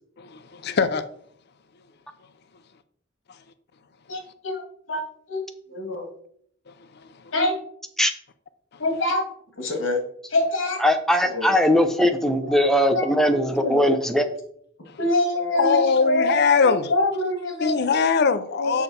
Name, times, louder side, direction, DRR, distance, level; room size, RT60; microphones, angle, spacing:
voice 1, 0.5-1.0 15.6-16.8 17.6-18.8, left 5 dB, 55° left, 0.5 m, -20 dB
voice 2, 4.1-4.6 4.9-5.0 5.3-5.4 5.7-6.1 7.3-7.6 8.8-9.2 9.6-10.0 10.3-10.8 11.3-11.6 12.9-13.8 15.0-16.4 16.6-17.8 18.6-18.8, left 1 dB, 90° left, 1.9 m, -25 dB
voice 3, 10.8-14.3, equal, ahead, 0.7 m, -20 dB
7.1 x 5.5 x 4.2 m
head